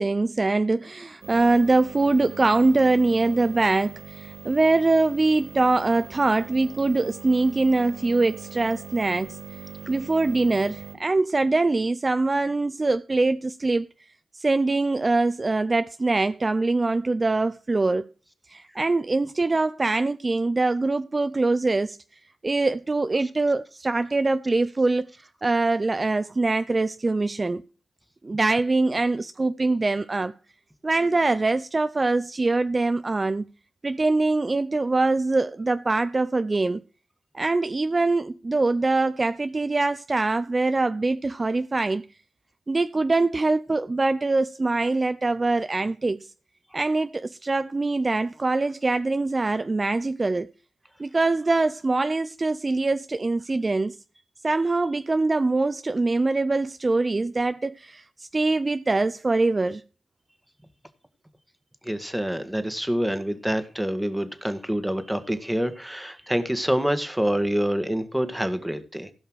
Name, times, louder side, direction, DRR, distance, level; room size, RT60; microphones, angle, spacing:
voice 1, 0.0-9.4 9.9-13.9 14.3-18.1 18.5-22.0 22.4-27.6 28.2-30.3 30.8-33.5 33.8-36.8 37.3-42.1 42.7-46.3 46.7-50.5 51.0-54.0 54.4-59.8, right 3 dB, 35° right, 0.5 m, -23 dB
sound 1, 1.2-10.9, right 6 dB, 70° right, 3.3 m, -41 dB
voice 2, 61.8-69.1, equal, 5° right, 1.9 m, -26 dB
16.0 x 5.6 x 6.3 m
cardioid pair, 50°, 0 cm